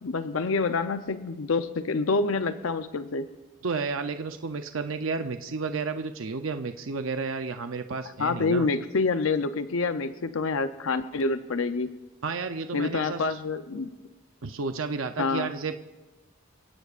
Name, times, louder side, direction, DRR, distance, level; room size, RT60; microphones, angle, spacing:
voice 1, 0.0-3.3 8.2-11.9 12.7-13.9 15.2-15.5, left 3 dB, 80° left, 10 dB, 0.6 m, -27 dB
voice 2, 3.6-8.7 12.2-13.4 14.4-15.8, right 4 dB, 75° right, 7 dB, 0.6 m, -32 dB
28.5 x 16.5 x 2.5 m, 1.2 s
head